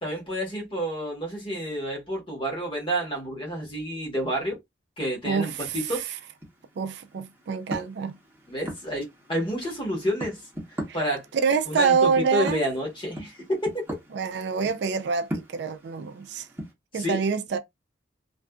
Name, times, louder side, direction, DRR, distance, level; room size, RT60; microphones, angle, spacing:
voice 1, 0.0-4.6 5.0-6.1 8.5-10.4 10.9-11.3 11.7-13.8 17.0-17.2, equal, 30° left, 1.1 m, -29 dB
voice 2, 5.2-6.0 6.8-8.2 10.9-11.0 11.4-12.7 14.1-16.5 16.9-17.6, right 5 dB, 65° right, 0.3 m, -26 dB
sound 1, 5.6-16.7, right 1 dB, 10° right, 0.8 m, -41 dB
2.5 x 2.4 x 2.2 m
head